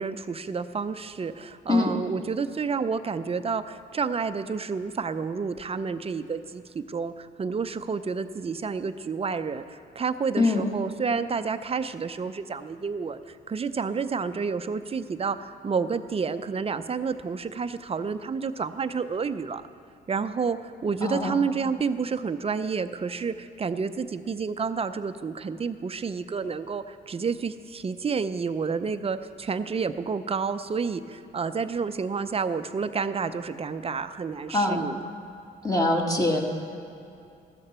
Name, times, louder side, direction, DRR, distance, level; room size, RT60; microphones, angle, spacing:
voice 1, 0.0-19.6 20.1-35.0, right 5 dB, 30° right, 11 dB, 0.6 m, -30 dB
voice 2, 21.0-21.4 34.5-34.9 35.6-36.4, left 2 dB, 20° left, 0 dB, 1.8 m, -23 dB
15.0 x 13.0 x 4.4 m, 2.6 s
cardioid pair, 90°, 20 cm